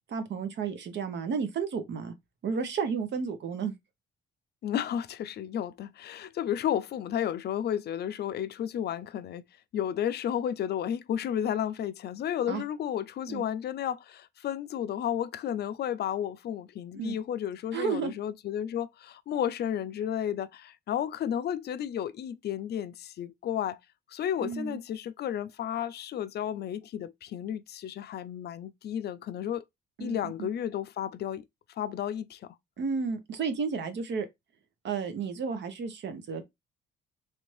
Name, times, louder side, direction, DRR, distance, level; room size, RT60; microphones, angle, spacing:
voice 1, 0.1-2.1 2.4-3.8 12.5-12.6 13.3-13.5 16.9-17.2 17.7-18.1 24.4-24.8 30.0-30.5 32.8-34.3 34.8-36.4, right 5 dB, 65° right, 0.9 m, -32 dB
voice 2, 4.6-9.5 9.7-23.8 24.1-29.6 30.0-31.4 31.8-32.6, left 10 dB, 55° left, 0.4 m, -32 dB
3.3 x 2.6 x 3.1 m
cardioid pair, 90°, 20 cm